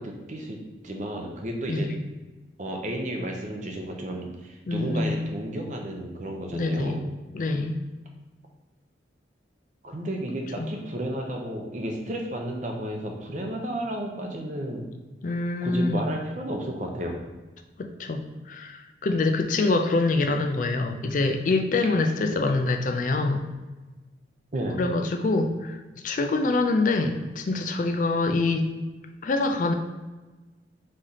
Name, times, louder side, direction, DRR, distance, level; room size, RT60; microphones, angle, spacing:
voice 1, 0.0-1.9 2.6-7.0 9.8-14.9 15.6-17.1 24.5-24.8, right 1 dB, 40° right, 2 dB, 0.7 m, -32 dB
voice 2, 4.7-5.2 6.5-7.0 7.3-7.8 10.6-10.7 15.2-16.1 17.8-23.4 24.8-28.7 29.2-29.7, left 3 dB, 45° left, 5 dB, 0.4 m, -25 dB
4.1 x 3.2 x 3.9 m, 1.2 s
head